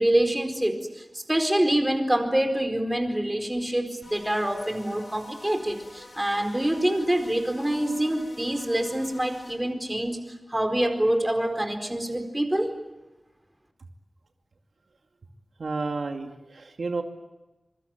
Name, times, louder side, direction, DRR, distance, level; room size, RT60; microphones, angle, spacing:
voice 1, 0.0-10.2 10.5-12.8, right 1 dB, 15° right, 6 dB, 4.5 m, -26 dB
sound 1, 4.0-9.5, left 2 dB, 60° left, 7.7 m, -47 dB
voice 2, 15.6-17.0, right 3 dB, 85° right, 4 dB, 2.4 m, -31 dB
26.0 x 24.0 x 9.1 m, 1.1 s
wide cardioid pair, 85°, 0 cm